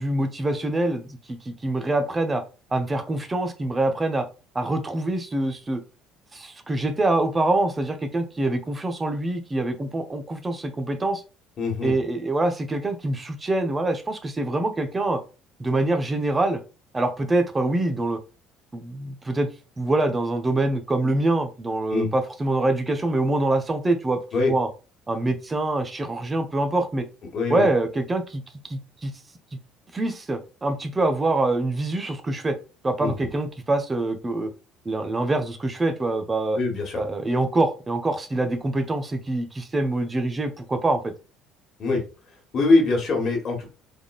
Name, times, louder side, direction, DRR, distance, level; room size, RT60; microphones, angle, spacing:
voice 1, 0.0-2.4 2.7-4.3 4.5-5.8 6.3-11.2 11.8-15.2 15.6-16.6 16.9-18.2 18.7-19.5 19.8-24.2 24.5-24.7 25.1-27.0 27.5-29.1 29.9-32.6 32.8-34.5 34.8-36.6 36.9-41.1, right 2 dB, 20° right, 7 dB, 0.8 m, -25 dB
voice 2, 11.6-11.9 21.9-22.1 24.3-24.5 27.3-27.7 33.0-33.1 36.5-37.0 41.8-42.0 42.5-43.6, left 3 dB, 40° left, 1 dB, 1.6 m, -22 dB
3.6 x 3.6 x 2.3 m, 0.32 s
figure-of-eight pair, 55°, 0 cm